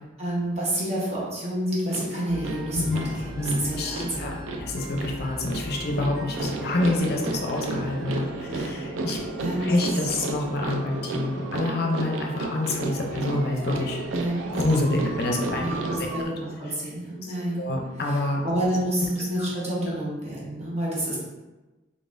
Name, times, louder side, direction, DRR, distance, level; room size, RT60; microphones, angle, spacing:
voice 1, 0.2-4.3 8.5-8.8 9.3-9.7 14.1-14.4 15.6-17.7 18.0-21.2, right 1 dB, 35° right, -6 dB, 1.0 m, -29 dB
sound 1, 1.9-16.2, right 3 dB, 85° right, 0.4 m, -33 dB
sound 2, 2.3-11.4, equal, ahead, 1.0 m, -40 dB
voice 2, 3.4-4.3 4.6-9.2 9.6-14.0 14.5-15.6 17.2-18.4 19.4-19.5, left 2 dB, 50° left, 0 dB, 0.6 m, -27 dB
3.9 x 3.5 x 2.5 m, 1.1 s
head